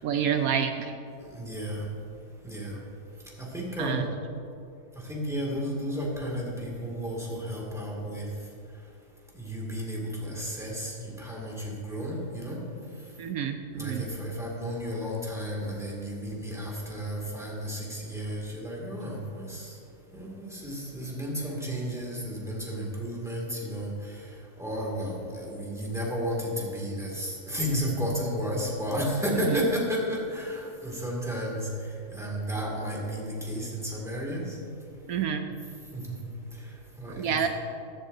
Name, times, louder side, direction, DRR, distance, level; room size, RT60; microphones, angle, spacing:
voice 1, 0.0-0.9 3.8-4.1 13.2-14.0 29.5-29.6 35.1-35.5 37.2-37.5, right 8 dB, 75° right, 6 dB, 1.0 m, -28 dB
voice 2, 1.2-1.9 2.4-2.8 3.4-4.1 5.0-8.3 9.3-12.6 13.7-19.8 20.1-34.6 35.9-36.2 36.5-37.4, equal, ahead, -3 dB, 2.2 m, -33 dB
14.5 x 12.0 x 2.7 m, 2.6 s
omnidirectional pair, 1.5 m